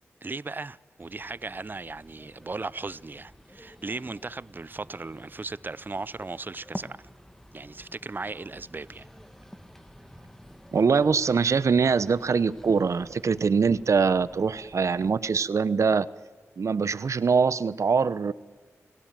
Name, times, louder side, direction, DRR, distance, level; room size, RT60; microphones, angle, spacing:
voice 1, 0.2-7.0 7.5-9.1, right 3 dB, 35° right, 0.7 m, -37 dB
sound 1, 1.0-15.1, equal, 5° left, 2.2 m, -49 dB
voice 2, 10.7-16.1 16.6-18.3, right 5 dB, 65° right, 1.0 m, -23 dB
29.0 x 18.0 x 9.3 m
cardioid pair, 55°, 5 cm